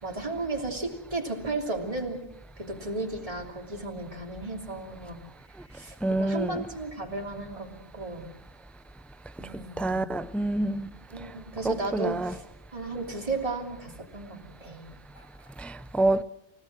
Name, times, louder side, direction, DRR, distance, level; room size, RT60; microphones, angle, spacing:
voice 1, 0.0-2.2 2.6-5.2 5.7-8.3 9.4-10.2 11.1-12.4 12.7-15.5, right 2 dB, 35° right, 3.2 m, -34 dB
voice 2, 6.0-6.6 9.8-10.9 11.6-12.3 15.6-16.2, right 2 dB, ahead, 0.5 m, -27 dB
29.5 x 17.0 x 6.1 m
omnidirectional pair, 1.0 m